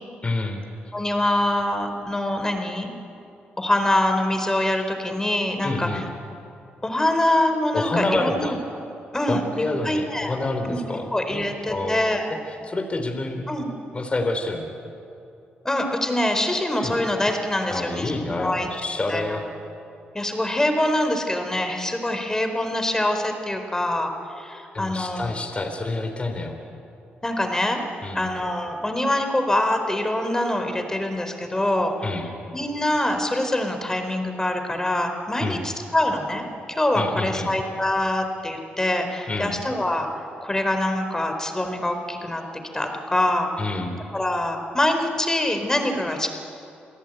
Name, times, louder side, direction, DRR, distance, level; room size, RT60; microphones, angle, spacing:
voice 1, 0.2-0.6 5.6-6.0 7.7-8.6 9.3-11.4 11.7-12.0 12.3-13.5 13.9-14.7 16.8-17.0 17.7-19.4 24.7-26.6 28.0-28.3 32.0-32.3 35.4-35.7 36.9-37.5 39.3-39.6 43.6-44.0, left 2 dB, 30° left, 4 dB, 3.6 m, -28 dB
voice 2, 0.9-2.9 3.6-6.0 6.8-8.4 9.1-9.4 9.8-10.3 10.6-10.8 11.1-12.3 13.5-13.7 15.6-18.7 19.1-19.4 20.1-25.4 27.2-27.8 28.1-31.9 32.5-40.1 40.4-42.4 42.7-43.5 44.1-46.3, left 1 dB, 15° left, 5 dB, 4.3 m, -24 dB
28.0 x 17.5 x 9.2 m, 2.7 s
cardioid pair, 75°, 4 cm